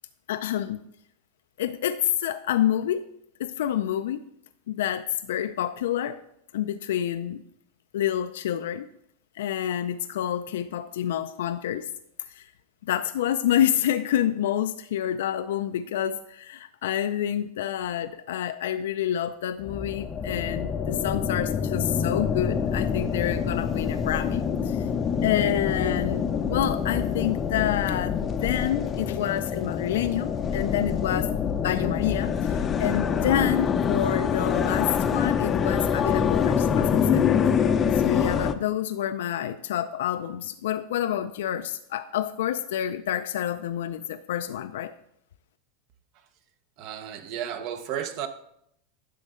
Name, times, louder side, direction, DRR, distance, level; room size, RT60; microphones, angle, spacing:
voice 1, 0.3-0.8 1.6-3.0 3.4-4.2 4.7-6.2 6.5-7.4 7.9-8.9 9.4-11.9 12.2-12.5 12.8-24.9 25.2-31.3 31.6-37.3 37.9-44.9, left 11 dB, 80° left, 0.4 m, -28 dB
sound 1, 19.6-38.5, left 7 dB, 25° left, 0.6 m, -26 dB
voice 2, 46.8-48.3, right 9 dB, 50° right, 0.9 m, -33 dB
10.0 x 6.6 x 3.7 m
supercardioid pair, 135°, 0 cm